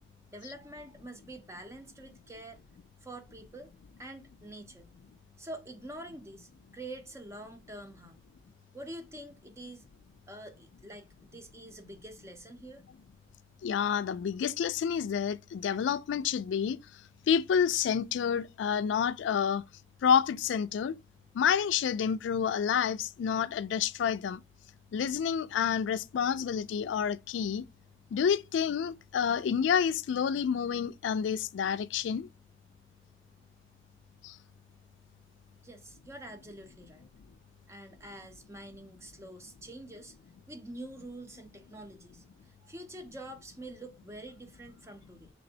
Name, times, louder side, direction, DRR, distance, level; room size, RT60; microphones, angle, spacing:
voice 1, 0.3-2.6 3.0-3.7 4.0-4.9 5.4-8.2 8.7-9.9 10.3-12.8 35.6-37.1 37.7-40.1 40.5-45.3, right 1 dB, 15° right, 0.5 m, -46 dB
voice 2, 13.6-16.8 17.3-19.6 20.0-21.0 21.3-24.4 24.9-27.7 28.1-32.3 34.2-34.4, left 7 dB, 85° left, 0.3 m, -29 dB
3.3 x 3.0 x 2.7 m
head